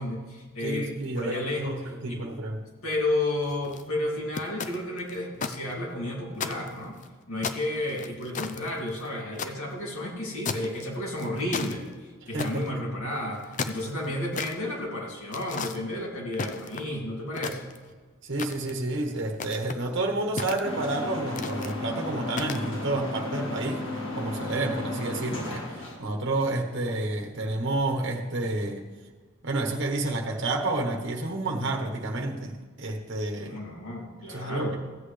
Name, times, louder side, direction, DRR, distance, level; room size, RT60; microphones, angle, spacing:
voice 1, 0.0-2.3 2.8-7.0 7.3-11.9 12.3-17.7 33.4-34.8, left 1 dB, 90° left, -3 dB, 2.5 m, -32 dB
voice 2, 0.6-2.6 12.3-12.8 18.2-23.8 24.1-28.8 29.4-33.6 34.3-34.7, right 2 dB, 60° right, 2 dB, 1.2 m, -30 dB
sound 1, 3.4-3.8 4.4-5.6 5.9-6.0 6.4-7.1 7.4-9.5 10.4-10.8 11.2-11.8 12.4-12.7 13.3-14.5 15.3-15.8 16.3-17.0 17.3-17.9 18.4-18.8 19.3-19.8 20.4-20.9 21.4-21.7 22.3-22.7, left 5 dB, 35° left, 0.5 m, -34 dB
sound 2, 20.6-26.0, left 2 dB, 60° left, 1.8 m, -34 dB
15.5 x 8.1 x 3.3 m, 1.4 s
head